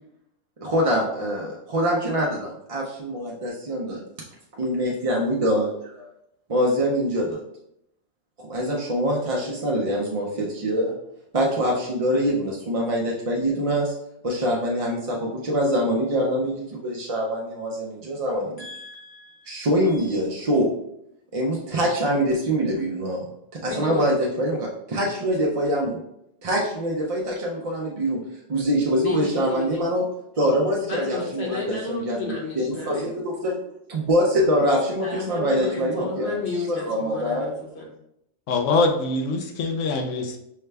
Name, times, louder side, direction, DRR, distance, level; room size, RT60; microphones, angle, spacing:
voice 1, 0.6-4.0 4.6-6.1 6.5-7.4 8.4-11.0 11.3-13.9 14.2-18.6 19.5-20.7 21.3-23.2 23.5-26.0 26.4-28.2 28.5-30.0 30.3-33.6 33.9-36.4 36.7-37.5, equal, 45° right, -3 dB, 0.5 m, -24 dB
voice 2, 18.6-19.7 23.6-24.1 29.0-29.9 30.9-33.1 35.0-37.9, left 3 dB, 60° left, -3 dB, 1.4 m, -33 dB
voice 3, 38.5-40.4, left 3 dB, 80° left, 5 dB, 1.0 m, -23 dB
5.6 x 2.2 x 3.3 m, 0.78 s
omnidirectional pair, 1.3 m